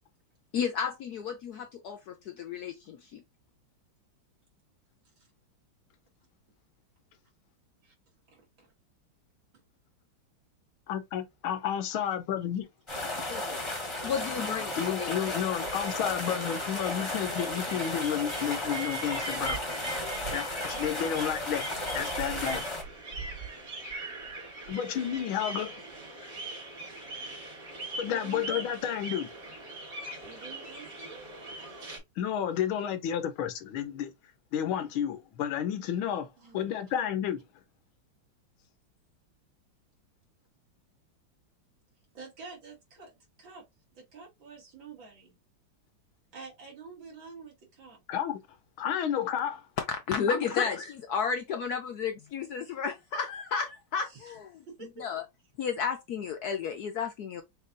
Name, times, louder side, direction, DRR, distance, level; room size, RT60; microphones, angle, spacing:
voice 1, 0.5-3.2 13.2-13.7 14.0-15.3 49.8-54.5 55.0-55.2 55.6-57.4, left 6 dB, 70° left, 0.9 m, -33 dB
voice 2, 8.3-8.7 9.5-9.6 28.0-28.9 30.2-31.3 32.5-32.6 36.4-36.9 42.1-43.6 43.9-45.4 46.3-48.0 54.0-54.4 54.7-55.0, right 5 dB, 70° right, 2.9 m, -48 dB
voice 3, 10.9-12.7 14.8-19.6 20.3-21.7 21.9-22.6 24.7-25.8 28.0-29.3 32.2-34.1 34.5-36.3 36.5-37.4 48.1-48.4 48.8-49.6 50.3-50.7, left 9 dB, 85° left, 1.6 m, -31 dB
sound 1, 12.9-22.8, left 2 dB, 20° left, 0.9 m, -34 dB
sound 2, 15.5-32.0, right 3 dB, 55° right, 3.4 m, -41 dB
6.5 x 2.7 x 2.6 m
omnidirectional pair, 2.2 m